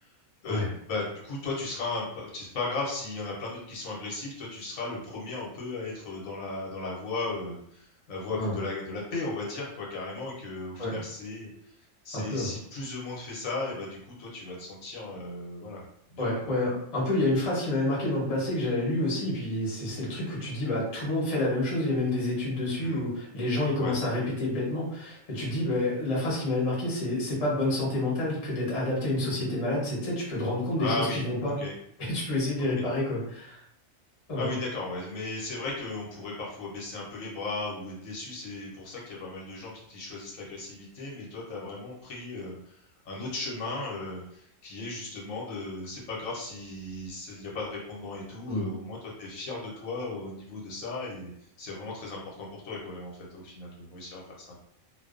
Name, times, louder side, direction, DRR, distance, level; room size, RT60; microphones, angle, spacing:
voice 1, 0.4-11.5 12.0-15.8 16.1-16.3 22.8-23.0 23.8-23.9 30.8-31.7 32.7-32.8 34.3-42.8 43.0-51.3 51.6-54.5, left 3 dB, 75° left, -3 dB, 1.1 m, -36 dB
voice 2, 12.1-12.5 16.2-31.5 32.0-33.6 34.3-34.5 48.5-48.7, left 1 dB, 35° left, -6 dB, 0.7 m, -28 dB
2.4 x 2.2 x 2.4 m, 0.71 s
omnidirectional pair, 1.4 m